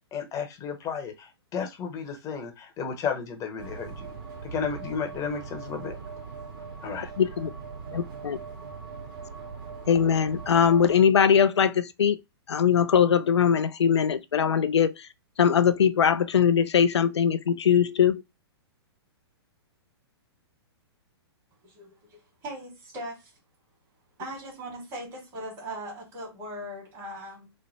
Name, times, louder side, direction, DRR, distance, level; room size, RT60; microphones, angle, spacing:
voice 1, 0.1-4.1 4.4-6.0 6.8-7.1, left 6 dB, 25° left, 0.8 m, -33 dB
sound 1, 3.6-11.0, right 5 dB, 55° right, 1.4 m, -40 dB
voice 2, 7.2-7.5 7.9-8.4 9.9-12.2 12.5-15.1 15.4-18.2, left 7 dB, 85° left, 0.5 m, -21 dB
voice 3, 21.6-23.3 24.2-27.5, right 1 dB, 35° right, 1.6 m, -39 dB
3.1 x 2.1 x 3.9 m
hypercardioid pair, 130°, 14 cm